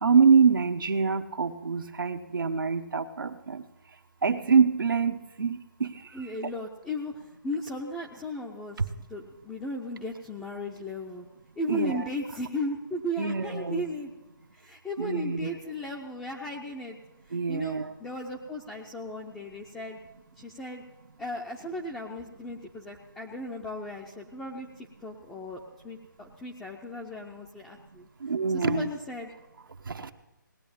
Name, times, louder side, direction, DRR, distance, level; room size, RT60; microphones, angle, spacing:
voice 1, 0.0-3.6 4.2-5.9 11.7-12.0 13.2-13.8 15.0-15.5 17.3-17.9 28.2-28.9 29.9-30.1, right 5 dB, 85° right, 7 dB, 1.0 m, -25 dB
voice 2, 6.1-11.3 11.6-14.1 14.5-17.0 17.3-20.0 20.4-20.8 21.2-28.1 28.5-29.3, left 1 dB, 5° left, 0 dB, 0.6 m, -36 dB
18.5 x 8.4 x 8.7 m, 1.0 s
hypercardioid pair, 165°, 11 cm